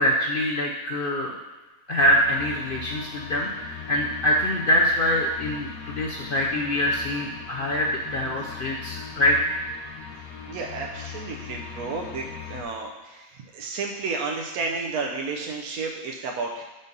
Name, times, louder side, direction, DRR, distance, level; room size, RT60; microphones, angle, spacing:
voice 1, 0.0-1.3 1.9-9.4, equal, 60° left, -1 dB, 0.6 m, -24 dB
sound 1, 2.0-12.6, left 7 dB, 80° left, 1.2 m, -40 dB
voice 2, 10.5-16.6, right 4 dB, 85° right, 0 dB, 1.1 m, -32 dB
5.4 x 3.9 x 5.4 m, 1.2 s
omnidirectional pair, 1.5 m